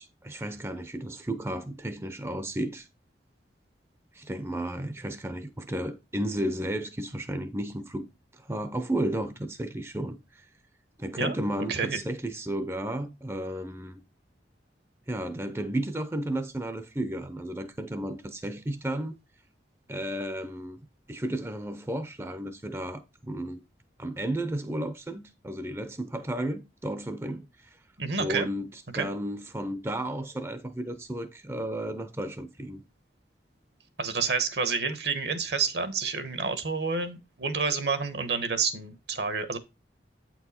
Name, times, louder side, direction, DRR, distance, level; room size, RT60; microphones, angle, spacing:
voice 1, 0.0-2.9 4.1-8.1 8.3-10.5 11.0-14.0 15.1-19.2 19.9-20.8 21.1-23.6 24.0-27.8 28.2-32.8, right 1 dB, 15° right, 0.5 m, -33 dB
voice 2, 11.7-12.0 28.0-28.5 28.9-29.1 34.0-39.6, right 5 dB, 65° right, 1.1 m, -29 dB
8.7 x 4.5 x 4.2 m
head